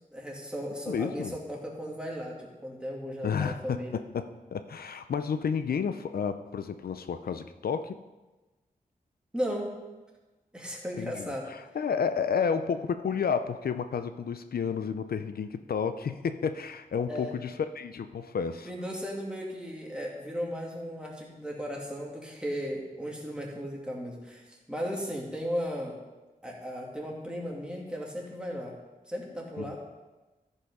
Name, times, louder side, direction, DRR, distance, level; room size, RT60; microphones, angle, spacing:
voice 1, 0.0-4.0 9.3-9.8 10.5-11.5 17.1-17.3 18.7-26.0 26.4-28.8 29.0-29.8, equal, 5° right, -2 dB, 2.3 m, -36 dB
voice 2, 0.9-1.3 3.2-4.2 4.5-8.0 11.0-18.7 29.6-29.8, left 6 dB, 80° left, 10 dB, 0.5 m, -31 dB
14.0 x 5.5 x 5.4 m, 1.1 s
wide cardioid pair, 95°, 15 cm